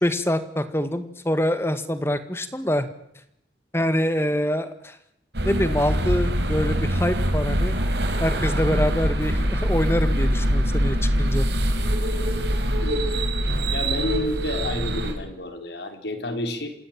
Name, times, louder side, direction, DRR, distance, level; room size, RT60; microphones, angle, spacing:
voice 1, 0.0-2.9 3.7-5.0 5.5-7.8 8.2-11.5, equal, 15° left, 11 dB, 1.8 m, -25 dB
sound 1, 5.3-15.1, equal, 75° right, 4.7 m, -23 dB
voice 2, 12.8-13.2 13.7-16.7, left 1 dB, 75° left, 7 dB, 4.0 m, -30 dB
27.5 x 17.0 x 8.8 m, 0.78 s
head